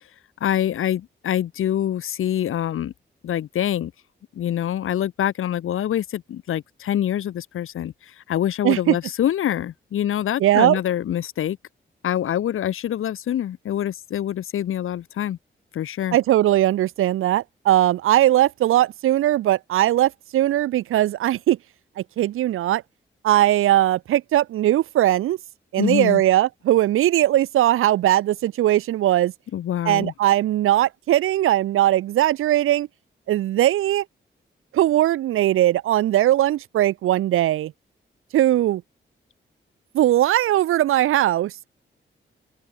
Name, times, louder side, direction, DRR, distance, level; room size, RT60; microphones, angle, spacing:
voice 1, 0.4-2.9 3.2-3.9 4.4-11.6 12.0-15.4 15.7-16.2 25.8-26.2 29.5-30.1, left 11 dB, 80° left, 5.5 m, -25 dB
voice 2, 8.6-9.0 10.4-10.8 16.1-21.6 22.0-22.8 23.2-25.4 25.7-29.3 29.8-32.9 33.3-34.0 34.7-37.7 38.3-38.8 39.9-41.7, right 13 dB, 90° right, 1.7 m, -19 dB
open air
supercardioid pair, 45°, 21 cm